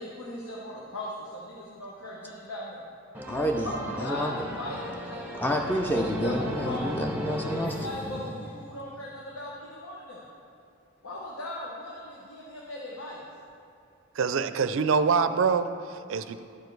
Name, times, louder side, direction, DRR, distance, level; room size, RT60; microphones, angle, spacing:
voice 1, 0.0-2.8 3.6-4.3 4.6-5.6 5.9-6.9 7.4-10.3 11.0-13.2, left 1 dB, 85° left, -4 dB, 1.1 m, -38 dB
sound 1, 3.1-8.8, equal, 10° right, 0.8 m, -36 dB
voice 2, 3.3-3.7 4.0-4.6 5.3-8.2, equal, 10° left, 2 dB, 0.4 m, -29 dB
voice 3, 14.2-16.4, right 5 dB, 65° right, 11 dB, 0.4 m, -25 dB
12.5 x 5.0 x 4.6 m, 2.5 s
head